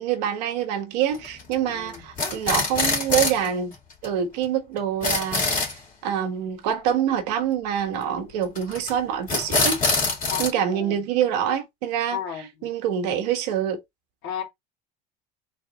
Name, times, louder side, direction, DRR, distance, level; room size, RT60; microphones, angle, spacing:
voice 1, 0.0-3.7 4.0-9.8 10.4-12.2 12.6-13.8, right 9 dB, 80° right, 1.3 m, -26 dB
sound 1, 1.1-1.5 1.9-3.5 3.7-3.8 4.0-4.1 4.4-4.5 4.8-5.7 8.5-8.9 9.3-10.5, left 3 dB, 40° left, 2.2 m, -24 dB
voice 2, 1.7-2.1 10.3-11.0 12.1-12.7 14.2-14.4, left 8 dB, 70° left, 2.0 m, -34 dB
4.0 x 2.6 x 3.9 m
supercardioid pair, 95°, 20 cm